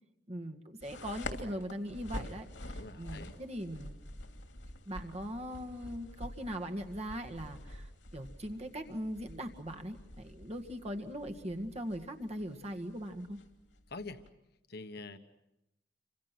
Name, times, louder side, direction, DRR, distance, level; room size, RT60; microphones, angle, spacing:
voice 1, 0.3-3.9 4.9-7.9 8.1-13.4, equal, 35° right, 4 dB, 1.9 m, -40 dB
sound 1, 0.8-14.3, left 1 dB, 85° left, 2.9 m, -47 dB
voice 2, 2.7-3.4 13.9-14.2 14.7-15.2, left 3 dB, 60° left, 8 dB, 1.4 m, -45 dB
29.0 x 25.5 x 6.1 m, 0.89 s
head